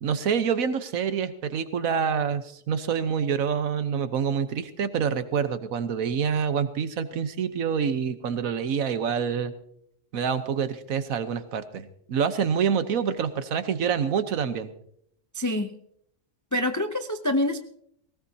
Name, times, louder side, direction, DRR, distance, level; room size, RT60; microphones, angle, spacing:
voice 1, 0.0-9.5 10.1-14.7, right 7 dB, 90° right, 11 dB, 1.4 m, -27 dB
voice 2, 15.3-15.8 16.5-17.6, left 1 dB, 25° left, 7 dB, 0.4 m, -26 dB
19.0 x 18.5 x 2.8 m, 0.72 s
omnidirectional pair, 1.4 m